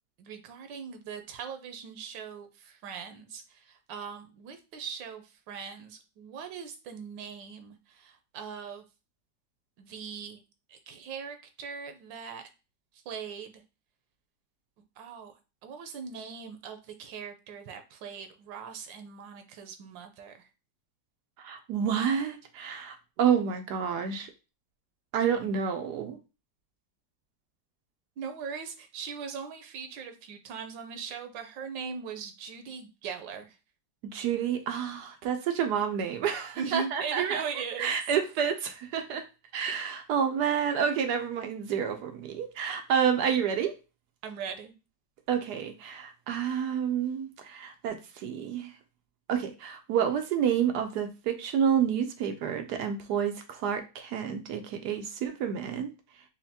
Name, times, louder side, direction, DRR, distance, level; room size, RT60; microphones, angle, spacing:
voice 1, 0.2-8.8 9.8-10.4 10.7-12.4 13.1-13.6 15.0-15.3 15.6-20.4 28.2-33.6 36.6-38.0 44.2-44.7, right 6 dB, 90° right, 7 dB, 1.4 m, -39 dB
voice 2, 21.4-24.3 25.1-26.2 34.1-37.4 37.8-39.2 39.5-43.7 45.3-48.7 49.3-55.9, right 8 dB, 75° right, 6 dB, 1.1 m, -29 dB
5.6 x 2.2 x 2.7 m, 0.29 s
omnidirectional pair, 2.0 m